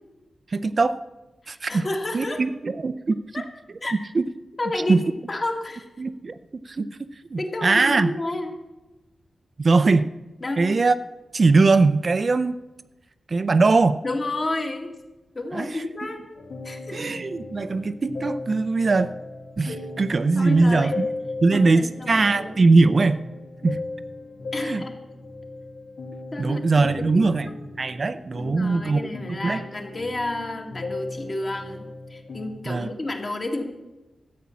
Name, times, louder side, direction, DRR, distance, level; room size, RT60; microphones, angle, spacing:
voice 1, 0.5-1.0 1.5-1.9 2.1-3.4 4.1-4.3 4.9-5.0 6.0-6.4 6.7-6.9 7.3-8.1 9.6-10.1 10.6-10.9 11.3-12.6 13.3-14.0 15.5-15.9 16.9-19.1 19.6-21.1 21.4-23.2 23.6-23.8 24.6-24.8 26.4-27.5 27.8-29.0 29.3-29.6 32.7-32.9, right 3 dB, 40° right, 12 dB, 0.5 m, -21 dB
voice 2, 1.4-2.5 3.3-3.5 3.8-4.0 4.6-5.0 5.3-5.9 7.4-8.6 10.4-10.7 14.0-14.9 15.4-16.3 16.6-17.1 20.4-21.0 21.5-22.6 24.5-25.0 26.3-27.6 28.4-33.6, left 2 dB, 35° left, 3 dB, 1.9 m, -31 dB
sound 1, 16.4-32.5, left 2 dB, 70° left, 1.9 m, -37 dB
13.5 x 8.7 x 7.1 m, 1.1 s
wide cardioid pair, 130°, 0 cm